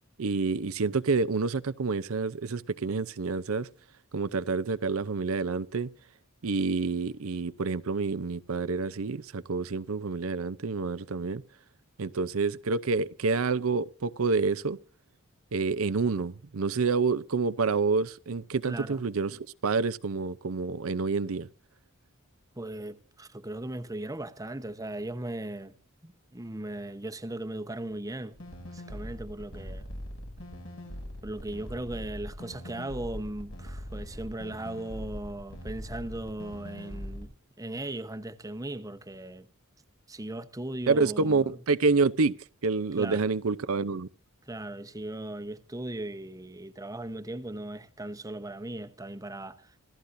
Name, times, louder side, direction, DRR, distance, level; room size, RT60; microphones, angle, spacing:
voice 1, 0.2-3.7 4.1-5.9 6.4-11.4 12.0-14.8 15.5-21.5 40.9-42.3 42.6-44.1, right 4 dB, 75° right, 0.6 m, -28 dB
voice 2, 18.7-19.0 22.6-25.7 26.0-28.4 28.7-29.8 31.2-37.3 37.6-39.5 40.1-41.6 43.0-43.3 44.5-49.8, right 1 dB, 15° right, 1.0 m, -38 dB
sound 1, 28.4-37.2, equal, 75° left, 6.9 m, -41 dB
26.5 x 15.0 x 2.7 m
head